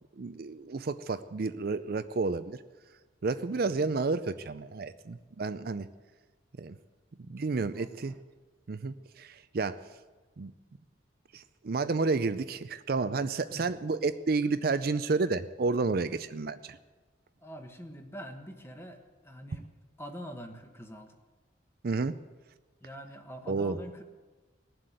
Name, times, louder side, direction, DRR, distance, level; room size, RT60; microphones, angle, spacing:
voice 1, 0.2-2.6 3.2-5.9 6.6-6.8 7.3-8.1 8.7-9.8 10.4-10.5 11.3-16.8 21.8-22.2 23.5-23.8, right 3 dB, 50° right, 12 dB, 0.5 m, -31 dB
voice 2, 3.5-3.8 7.2-7.4 7.7-8.2 13.5-13.6 17.4-19.7 20.0-21.1 22.8-24.0, equal, 15° left, 5 dB, 1.3 m, -45 dB
19.0 x 7.7 x 9.3 m, 1.3 s
head